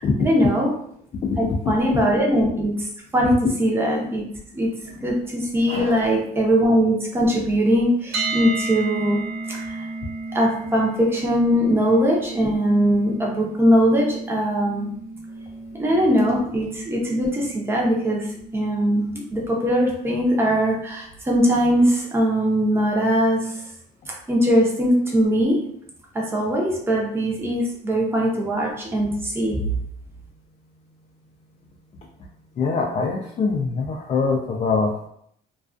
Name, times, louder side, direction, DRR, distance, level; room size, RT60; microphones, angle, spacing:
voice 1, 0.2-0.7 1.4-2.7 3.1-3.3 3.6-4.2 4.5-4.7 5.0-9.2 9.5-9.8 10.3-14.9 15.8-18.3 18.5-23.6 24.3-25.6 26.1-29.6, equal, 15° right, -2 dB, 0.6 m, -21 dB
voice 2, 1.2-1.6 1.9-2.0 5.7-6.0 32.6-35.1, left 4 dB, 40° left, -1 dB, 0.4 m, -23 dB
sound 1, 8.1-20.0, right 3 dB, 65° right, 0.6 m, -34 dB
2.3 x 2.3 x 2.4 m, 0.68 s
cardioid pair, 110°, 17 cm